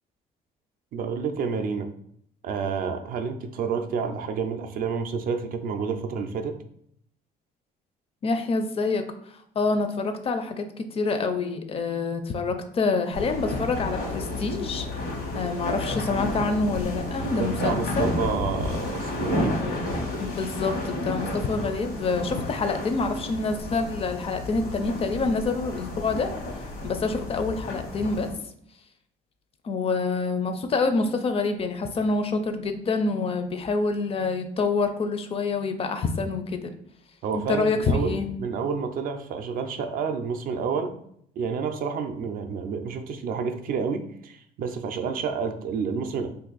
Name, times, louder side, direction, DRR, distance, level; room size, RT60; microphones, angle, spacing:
voice 1, 0.9-1.9 2.4-6.6 17.2-19.6 37.2-40.9 41.4-46.3, right 5 dB, 60° right, 7 dB, 0.4 m, -29 dB
voice 2, 8.2-9.0 9.6-18.1 19.6-19.8 20.2-28.3 29.6-36.7 37.3-38.3, left 3 dB, 35° left, 8 dB, 0.4 m, -27 dB
sound 1, 13.1-28.3, left 2 dB, 90° left, 1.2 m, -31 dB
2.6 x 2.4 x 3.9 m, 0.69 s
cardioid pair, 110°, 17 cm